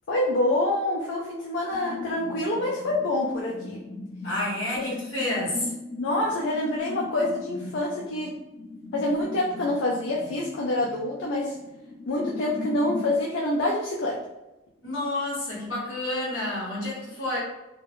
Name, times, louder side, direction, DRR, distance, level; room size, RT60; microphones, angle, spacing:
voice 1, 0.1-3.8 4.7-4.9 6.0-8.3 8.9-11.6 12.1-14.2, left 1 dB, 65° left, -2 dB, 0.4 m, -26 dB
sound 1, 1.7-13.2, left 3 dB, 40° left, 0.9 m, -39 dB
voice 2, 4.2-5.7 14.8-17.4, left 1 dB, 80° left, -6 dB, 1.3 m, -29 dB
2.7 x 2.0 x 3.0 m, 0.97 s
head